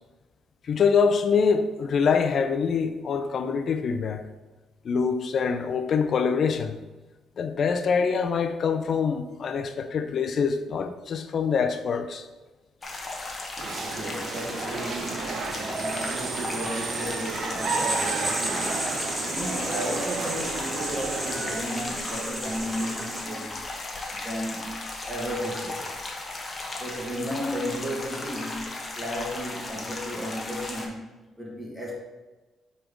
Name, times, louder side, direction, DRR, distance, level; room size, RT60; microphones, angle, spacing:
voice 1, 0.6-4.2 4.8-6.8 7.4-12.2, left 6 dB, 55° left, 0.5 m, -25 dB
sound 1, 12.8-30.9, left 2 dB, 35° left, 1.2 m, -36 dB
sound 2, 13.6-21.6, right 5 dB, 65° right, 0.6 m, -33 dB
voice 2, 13.7-18.9 19.3-23.7 24.2-26.0 26.8-28.7 29.0-31.0 31.4-31.9, equal, 5° right, 1.7 m, -34 dB
Writing, 17.6-23.5, right 1 dB, 25° right, 1.9 m, -33 dB
4.5 x 4.2 x 5.1 m
cardioid pair, 90°, 0 cm